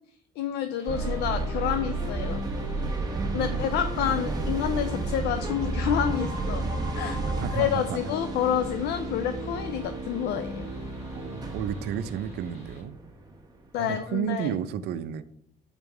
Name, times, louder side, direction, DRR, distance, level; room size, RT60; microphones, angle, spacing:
voice 1, 0.4-2.4 3.3-6.6 6.9-7.2 7.5-10.7 13.7-14.5, left 9 dB, 80° left, 9 dB, 0.5 m, -28 dB
sound 1, 0.8-12.8, left 2 dB, 40° left, 2.3 m, -55 dB
sound 2, 0.9-13.7, right 2 dB, 25° right, 1.1 m, -32 dB
voice 2, 3.2-3.6 7.4-8.0 11.1-13.0 13.8-15.2, right 9 dB, 75° right, 13 dB, 0.5 m, -32 dB
5.3 x 4.0 x 4.7 m, 0.69 s
cardioid pair, 110°, 17 cm